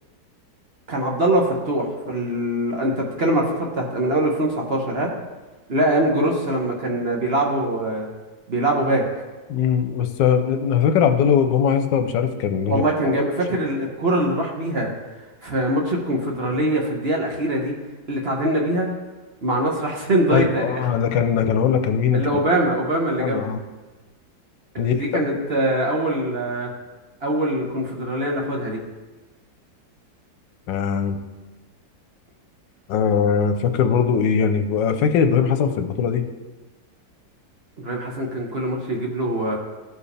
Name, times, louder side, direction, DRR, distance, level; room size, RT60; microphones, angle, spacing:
voice 1, 0.9-5.1 5.7-8.1 8.5-9.0 12.7-14.9 15.4-17.7 18.1-18.9 19.4-20.7 22.1-23.5 24.7-26.7 27.2-28.8 37.8-39.6, right 1 dB, 40° right, 0 dB, 1.0 m, -23 dB
voice 2, 9.5-12.8 20.3-22.3 23.2-23.6 24.8-25.0 30.7-31.2 32.9-36.3, left 7 dB, 80° left, 8 dB, 1.3 m, -20 dB
14.5 x 4.8 x 3.3 m, 1.2 s
omnidirectional pair, 1.9 m